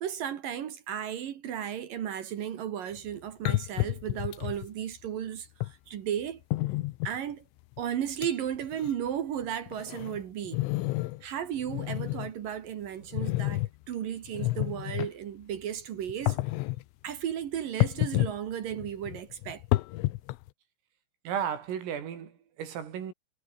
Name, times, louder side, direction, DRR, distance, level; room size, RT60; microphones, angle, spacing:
voice 1, 0.0-6.4 7.0-7.4 7.8-10.6 11.2-16.4 17.0-19.6, right 9 dB, 60° right, 2.6 m, -34 dB
sound 1, 3.0-3.1 3.5-4.7 5.6-5.7 6.5-7.2 7.8-7.9 8.2-8.3 8.6-8.9 9.4-11.2 11.6-12.3 13.1-13.7 14.3-15.1 16.1-16.8 17.8-18.4 18.7-20.5, left 19 dB, 80° left, 3.2 m, -30 dB
voice 2, 21.3-23.1, right 8 dB, 80° right, 6.5 m, -34 dB
omnidirectional pair, 5.8 m